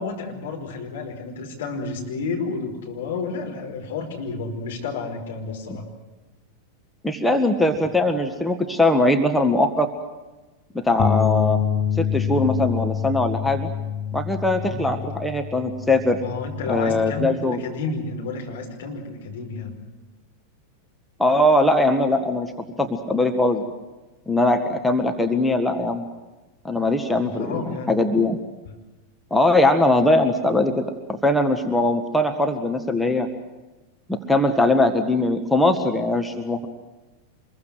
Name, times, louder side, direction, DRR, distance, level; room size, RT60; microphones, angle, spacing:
voice 1, 0.0-5.8 14.6-14.9 16.1-19.7 27.1-27.9, left 4 dB, 60° left, 2 dB, 5.1 m, -31 dB
voice 2, 7.0-9.9 10.7-11.6 12.0-13.7 14.1-16.2 16.7-17.6 21.2-22.5 22.8-23.7 24.3-26.0 26.6-28.4 29.3-30.8 31.1-33.3 34.1-36.7, left 2 dB, 5° left, 5 dB, 1.7 m, -21 dB
sound 1, 11.0-17.3, left 8 dB, 30° left, 1.3 m, -26 dB
26.0 x 22.0 x 7.9 m, 1.1 s
figure-of-eight pair, 90°, 0 cm